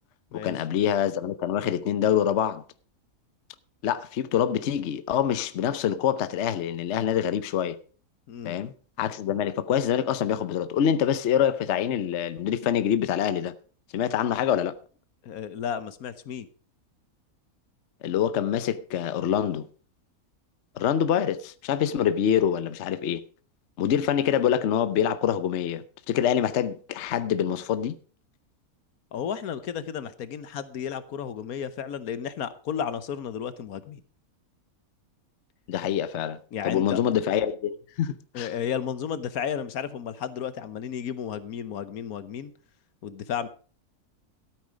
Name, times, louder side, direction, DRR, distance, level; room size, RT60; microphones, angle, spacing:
voice 1, 0.3-2.6 3.8-7.8 8.4-13.5 13.9-14.7 18.0-19.7 20.8-23.2 23.8-28.0 35.7-38.5, left 9 dB, 55° left, 0.9 m, -25 dB
voice 2, 15.2-16.5 29.1-34.0 36.5-37.0 38.3-42.5 43.0-43.5, left 8 dB, 75° left, 1.3 m, -33 dB
13.0 x 9.1 x 5.0 m
omnidirectional pair, 1.6 m